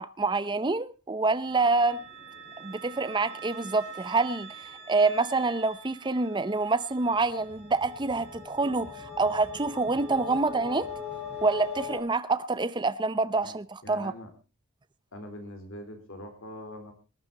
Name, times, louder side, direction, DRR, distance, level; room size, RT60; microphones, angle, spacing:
voice 1, 0.0-2.0 2.6-4.5 4.9-10.9 11.4-14.1, right 3 dB, 20° right, 0.6 m, -27 dB
sound 1, 1.4-12.0, left 3 dB, 30° left, 6.3 m, -42 dB
voice 2, 13.8-14.3 15.1-16.9, left 1 dB, 60° left, 3.7 m, -42 dB
20.0 x 11.0 x 4.0 m
head